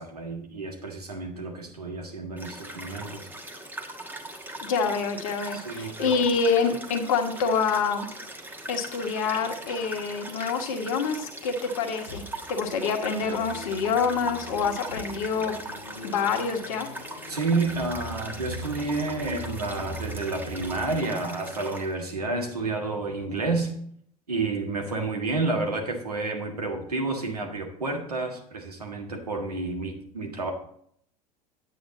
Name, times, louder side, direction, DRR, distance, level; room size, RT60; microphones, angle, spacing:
voice 1, 0.0-3.3 5.5-6.2 17.3-23.7 24.3-30.5, right 3 dB, 80° right, 2 dB, 1.7 m, -30 dB
sound 1, 2.4-21.9, right 1 dB, 10° right, 1.4 m, -40 dB
voice 2, 4.6-8.1 8.7-12.2 12.5-15.6 16.0-16.9, left 5 dB, 60° left, 5 dB, 1.4 m, -26 dB
sound 2, 12.1-21.1, left 1 dB, 85° left, 0.9 m, -41 dB
9.3 x 8.5 x 4.1 m, 0.67 s
figure-of-eight pair, 75°, 20 cm